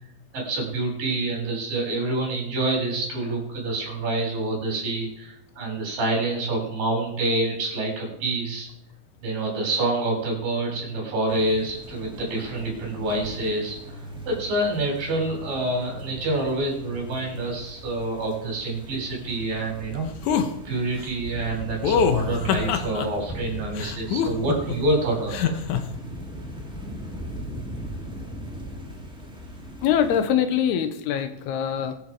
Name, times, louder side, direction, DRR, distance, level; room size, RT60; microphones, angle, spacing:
voice 1, 0.3-8.7 9.2-14.0 14.3-20.1 20.7-25.5, right 2 dB, 60° right, -1 dB, 5.5 m, -27 dB
sound 1, 11.3-30.3, equal, 5° right, 0.5 m, -39 dB
sound 2, 12.2-17.5, right 2 dB, 35° right, 3.4 m, -43 dB
sound 3, 20.2-20.5 21.8-23.1 23.8-24.8 25.3-25.8, left 7 dB, 70° left, 2.0 m, -23 dB
voice 2, 29.8-32.0, left 9 dB, 90° left, 9 dB, 3.0 m, -23 dB
22.0 x 7.3 x 4.7 m, 0.79 s
omnidirectional pair, 4.5 m